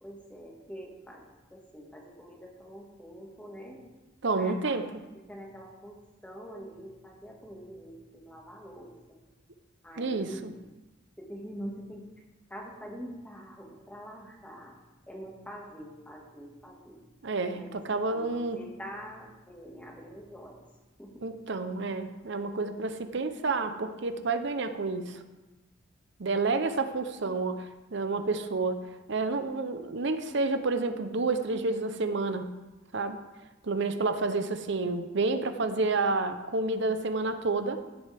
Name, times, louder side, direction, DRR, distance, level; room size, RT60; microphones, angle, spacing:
voice 1, 0.0-1.2 1.5-3.8 4.4-4.8 5.1-9.2 9.8-10.6 11.2-12.1 12.5-14.8 15.1-17.0 17.5-20.6 21.0-21.2, equal, 5° left, -1 dB, 1.8 m, -45 dB
voice 2, 4.2-4.9 10.0-10.5 17.2-18.6 21.2-25.2 26.2-32.5 32.9-33.2 33.6-37.8, right 3 dB, 60° right, 9 dB, 0.7 m, -29 dB
16.0 x 7.7 x 3.5 m, 1.1 s
head